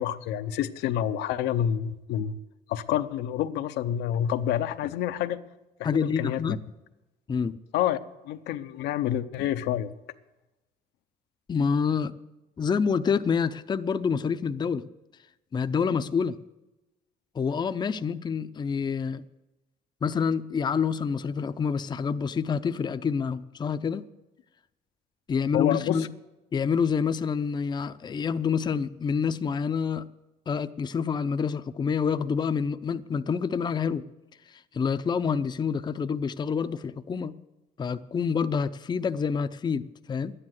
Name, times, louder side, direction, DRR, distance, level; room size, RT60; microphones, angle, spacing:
voice 1, 0.0-2.4 2.7-5.4 5.8-6.6 7.7-8.0 8.2-9.9 25.5-26.1, left 10 dB, 85° left, 9 dB, 0.7 m, -28 dB
voice 2, 5.8-6.6 7.3-7.6 11.5-12.1 12.6-14.8 15.5-16.4 17.3-19.2 20.0-24.0 25.3-26.1 26.5-30.1 30.5-34.0 34.7-37.3 37.8-40.3, left 6 dB, 25° left, 11 dB, 0.5 m, -27 dB
11.5 x 9.9 x 7.8 m, 1.0 s
cardioid pair, 110°, 17 cm